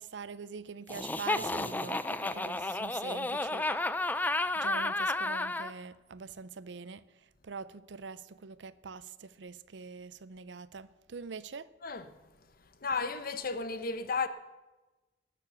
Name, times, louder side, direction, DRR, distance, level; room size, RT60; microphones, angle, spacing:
voice 1, 0.0-3.7 4.5-7.0 7.4-11.7, right 5 dB, 80° right, 0.6 m, -44 dB
Laughter, 0.9-5.7, left 2 dB, 10° left, 0.4 m, -32 dB
voice 2, 12.8-14.3, left 4 dB, 55° left, 0.9 m, -33 dB
18.5 x 7.2 x 6.9 m
head